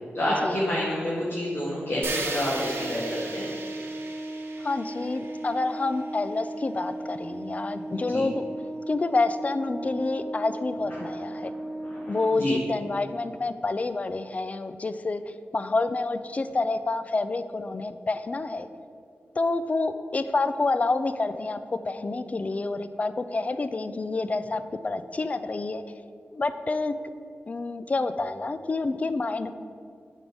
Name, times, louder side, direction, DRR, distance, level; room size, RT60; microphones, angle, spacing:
voice 1, 0.1-3.5 7.9-8.2 10.9-11.1 11.4-11.5 11.8-12.5, left 1 dB, 50° left, -8 dB, 1.9 m, -29 dB
Organ, 1.8-12.5, right 1 dB, 25° right, 1.0 m, -37 dB
sound 1, 2.0-6.1, right 3 dB, 70° right, 1.0 m, -37 dB
voice 2, 4.6-8.4 8.9-11.5 12.1-15.2 15.5-18.7 19.4-21.6 21.8-25.8 26.3-26.9 27.5-29.5, left 3 dB, 35° left, 11 dB, 0.4 m, -28 dB
9.2 x 3.6 x 6.0 m, 2.2 s
wide cardioid pair, 100°, 4 cm